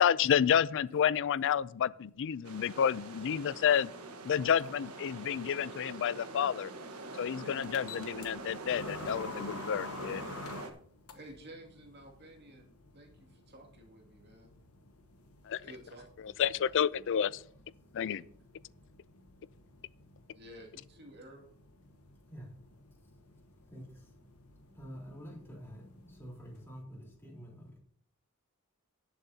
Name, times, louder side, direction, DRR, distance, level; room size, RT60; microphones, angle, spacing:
voice 1, 0.0-3.9 4.2-6.7 7.2-10.2 15.5-15.6 16.4-17.4 17.9-18.2, left 8 dB, 60° left, 0.4 m, -29 dB
voice 2, 2.4-2.8 6.1-6.4 7.0-7.5 8.3-8.6 17.8-18.0 18.8-18.9 22.3-22.5 23.0-27.8, equal, 10° left, 3.7 m, -51 dB
sound 1, 2.4-10.7, right 3 dB, 80° right, 1.3 m, -45 dB
sound 2, 7.6-26.8, left 3 dB, 75° left, 1.1 m, -50 dB
voice 3, 11.1-14.5 15.6-17.2 20.3-21.5, right 1 dB, 50° right, 2.4 m, -53 dB
18.0 x 7.3 x 2.8 m
head